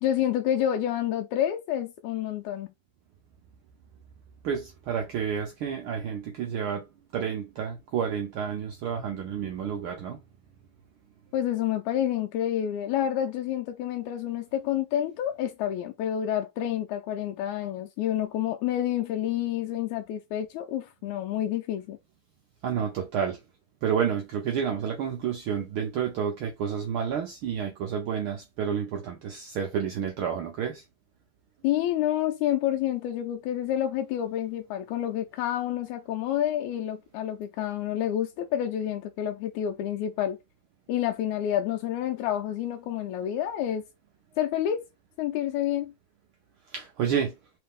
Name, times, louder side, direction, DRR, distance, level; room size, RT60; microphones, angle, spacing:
voice 1, 0.0-2.7 11.3-22.0 31.6-40.4 40.9-43.8 44.4-44.8 45.2-45.9, left 11 dB, 85° left, 2.0 m, -28 dB
voice 2, 4.4-6.9 7.1-10.2 22.6-23.4 23.8-30.8 46.7-47.3, right 7 dB, 80° right, 1.1 m, -30 dB
4.3 x 3.2 x 3.5 m
omnidirectional pair, 3.3 m